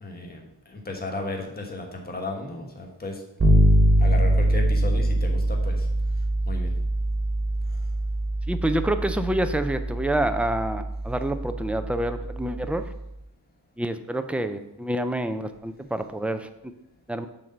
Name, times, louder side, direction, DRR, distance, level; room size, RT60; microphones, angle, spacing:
voice 1, 0.0-3.2 4.0-5.9 6.5-6.7, left 2 dB, 20° left, 2 dB, 1.3 m, -34 dB
Bass guitar, 3.4-13.1, equal, 25° right, 1.7 m, -24 dB
voice 2, 8.5-12.8 13.8-16.5 17.1-17.3, right 1 dB, 5° right, 8 dB, 0.4 m, -27 dB
7.5 x 4.1 x 6.6 m, 0.85 s
wide cardioid pair, 130°, 44 cm